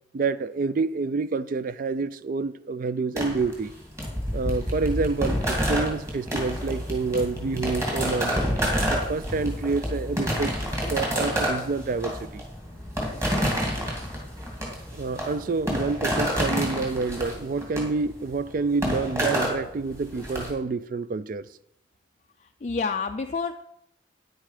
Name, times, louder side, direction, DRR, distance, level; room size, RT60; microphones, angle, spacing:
voice 1, 0.1-3.8 4.3-8.4 8.9-10.6 10.9-12.4 14.9-21.5, right 4 dB, 45° right, 0.3 m, -28 dB
sound 1, 3.2-20.5, equal, 15° right, 2.5 m, -28 dB
voice 2, 22.4-23.5, left 5 dB, 35° left, 0.4 m, -29 dB
9.7 x 9.0 x 4.9 m
head